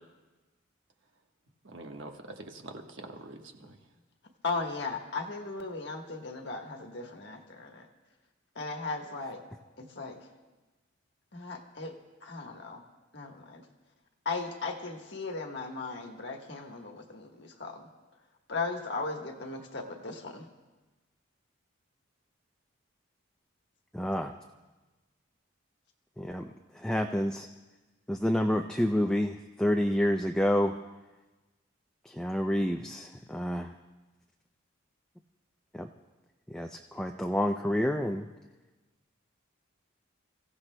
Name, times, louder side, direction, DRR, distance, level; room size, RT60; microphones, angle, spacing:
voice 1, 1.6-3.8, right 2 dB, 65° right, 3 dB, 1.3 m, -45 dB
voice 2, 4.4-7.9 8.6-9.4 9.8-10.2 11.3-12.0 12.2-12.8 13.1-13.6 14.2-17.8 18.5-20.5, left 3 dB, 55° left, 3 dB, 1.3 m, -37 dB
voice 3, 23.9-24.4 26.2-26.5 26.7-27.5 28.1-30.8 32.1-33.7 35.7-35.9 36.5-38.3, equal, 5° left, 3 dB, 0.3 m, -28 dB
29.5 x 16.0 x 2.2 m, 1.2 s
head